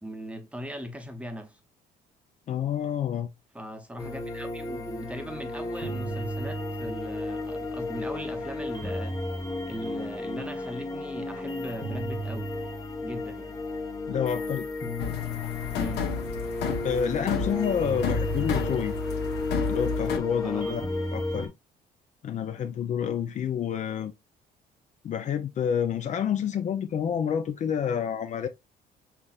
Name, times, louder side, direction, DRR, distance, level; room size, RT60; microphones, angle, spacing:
voice 1, 0.0-1.6 3.5-9.4 9.7-12.5 13.0-13.6 15.7-16.1 20.4-20.9, equal, 5° right, 0.8 m, -39 dB
voice 2, 2.5-3.3 14.1-14.6 16.8-19.0 19.7-20.8 21.1-21.5 22.2-24.1 25.0-28.5, left 8 dB, 45° left, 0.5 m, -28 dB
sound 1, 4.0-21.5, left 2 dB, 20° left, 1.1 m, -33 dB
sound 2, 15.0-20.2, left 5 dB, 80° left, 1.0 m, -31 dB
5.8 x 3.3 x 2.4 m
cardioid pair, 110°, 17 cm